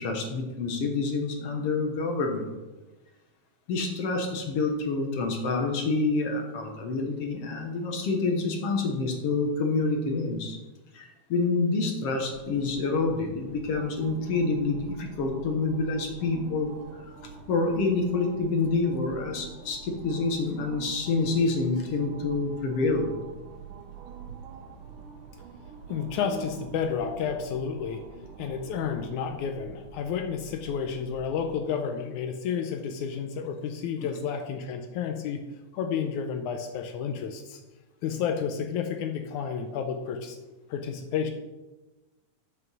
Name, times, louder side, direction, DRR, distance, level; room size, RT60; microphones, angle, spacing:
voice 1, 0.0-2.5 3.7-10.6 10.9-16.7 17.5-23.1 34.0-34.1, left 3 dB, 60° left, 3 dB, 1.7 m, -27 dB
sound 1, 12.1-31.6, right 6 dB, 85° right, 2.4 m, -45 dB
voice 2, 25.9-28.0 28.4-35.4 35.8-37.6 38.0-40.4 40.7-41.3, left 7 dB, 80° left, 5 dB, 2.0 m, -31 dB
7.0 x 6.5 x 6.0 m, 1.1 s
omnidirectional pair, 3.7 m